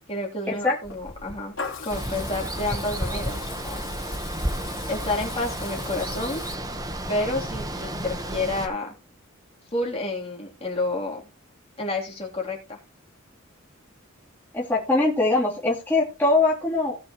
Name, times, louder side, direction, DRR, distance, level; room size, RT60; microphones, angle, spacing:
voice 1, 0.1-1.6 1.8-3.8 4.9-6.4 7.1-8.9 9.7-11.2 11.8-12.8, left 2 dB, 30° left, -1 dB, 3.2 m, -30 dB
Water tap faucet / Liquid, 0.8-6.5, left 5 dB, 70° left, 3.4 m, -40 dB
Water, 1.9-8.7, right 1 dB, 20° right, 1.1 m, -32 dB
voice 2, 14.5-17.0, left 2 dB, 10° left, -5 dB, 2.8 m, -22 dB
18.0 x 6.3 x 3.1 m, 0.28 s
head